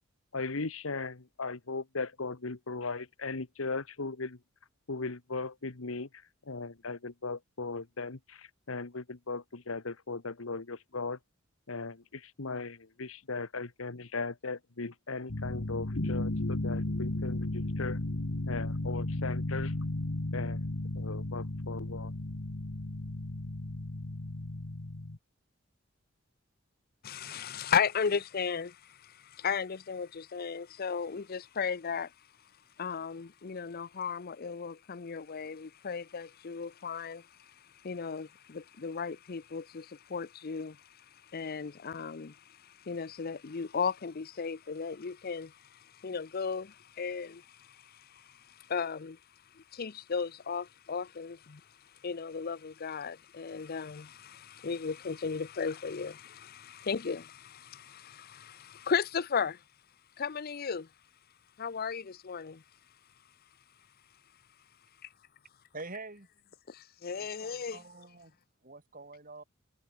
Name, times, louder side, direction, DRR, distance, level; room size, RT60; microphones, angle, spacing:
voice 1, 0.3-4.4 4.9-6.1 6.4-11.2 11.7-18.0 18.5-19.7 20.3-20.6 20.9-22.1, left 3 dB, 85° left, 1.3 m, -38 dB
sound 1, 15.3-25.2, left 2 dB, 65° left, 1.4 m, -34 dB
voice 2, 27.0-32.1 32.8-37.5 37.8-40.8 41.3-49.2 49.7-51.6 52.0-59.6 60.2-60.9 61.6-62.6 66.7-67.8, left 6 dB, 50° left, 0.6 m, -35 dB
voice 3, 65.7-66.3 67.2-68.4 68.6-69.4, right 3 dB, 45° right, 7.0 m, -46 dB
head